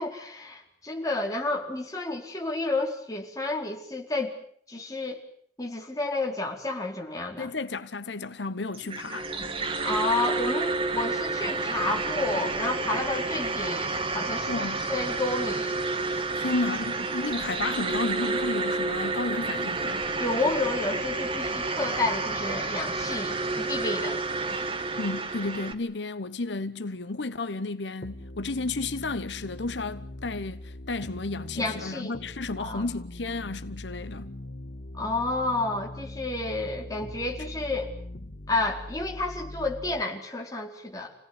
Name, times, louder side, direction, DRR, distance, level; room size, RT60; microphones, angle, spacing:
voice 1, 0.0-4.4 4.7-5.2 5.6-7.5 9.8-15.8 20.2-24.2 31.6-32.2 32.6-32.9 34.9-37.9 38.5-41.1, left 2 dB, 20° left, 4.6 m, -31 dB
voice 2, 7.4-9.3 14.5-14.8 16.1-20.0 25.0-34.3, left 3 dB, 90° left, 1.1 m, -32 dB
sound 1, 8.7-25.7, right 3 dB, 30° right, 2.0 m, -30 dB
sound 2, 28.0-40.0, left 1 dB, 60° left, 1.6 m, -41 dB
29.5 x 17.5 x 9.9 m
head